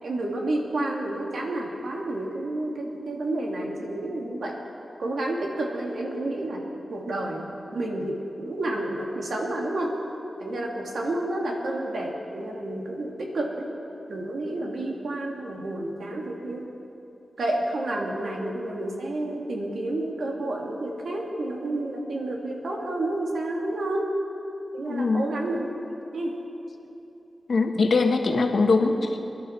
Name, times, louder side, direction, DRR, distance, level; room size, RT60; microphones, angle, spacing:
voice 1, 0.0-4.5 5.0-6.6 6.9-9.9 10.4-13.7 14.1-16.7 17.4-24.1 24.7-25.7 26.1-26.3, right 1 dB, 80° right, -1 dB, 2.4 m, -30 dB
voice 2, 24.8-25.2 27.5-29.2, left 3 dB, 70° left, 4 dB, 1.3 m, -22 dB
26.0 x 11.5 x 4.5 m, 3.0 s
wide cardioid pair, 95°, 0 cm